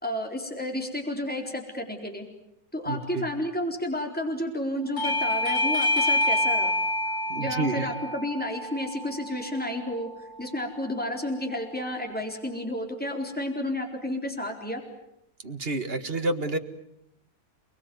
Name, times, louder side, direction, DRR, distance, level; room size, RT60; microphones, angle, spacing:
voice 1, 0.0-2.2 2.7-6.7 7.4-10.1 10.4-14.8, left 1 dB, 5° left, 2 dB, 4.0 m, -31 dB
voice 2, 2.9-3.2 7.3-7.9 15.4-16.6, right 2 dB, 45° right, 8 dB, 2.0 m, -29 dB
Bell / Doorbell, 5.0-10.1, left 1 dB, 35° left, 2.7 m, -27 dB
29.5 x 20.5 x 9.5 m, 0.79 s
omnidirectional pair, 1.5 m